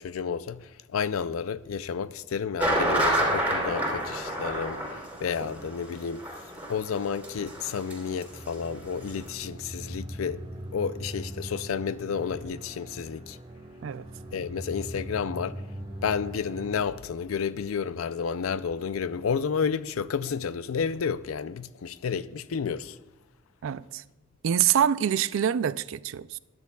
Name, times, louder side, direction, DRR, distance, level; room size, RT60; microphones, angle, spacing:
voice 1, 0.0-6.2 6.7-10.4 10.7-13.4 14.3-15.6 16.0-23.0, left 6 dB, 90° left, 0.4 m, -31 dB
sound 1, 2.6-8.2 8.5-8.6 9.0-9.1, right 1 dB, 10° right, 3.1 m, -28 dB
sound 2, 8.3-16.8, equal, 25° right, 1.3 m, -41 dB
voice 2, 23.6-24.0 24.4-26.4, right 9 dB, 65° right, 0.3 m, -25 dB
20.0 x 10.5 x 2.3 m
head